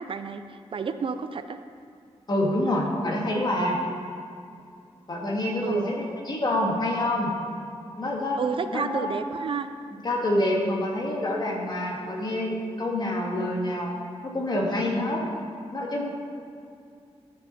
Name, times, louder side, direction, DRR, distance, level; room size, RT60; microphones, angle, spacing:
voice 1, 0.0-1.6 5.6-5.9 8.4-9.7, right 5 dB, 50° right, 9 dB, 0.4 m, -30 dB
voice 2, 2.3-3.8 5.1-7.3 8.0-8.4 8.7-9.2 10.0-13.9 14.2-15.2 15.7-16.1, left 1 dB, 40° left, -1 dB, 1.8 m, -27 dB
13.5 x 6.0 x 4.2 m, 2.4 s
wide cardioid pair, 105°, 11 cm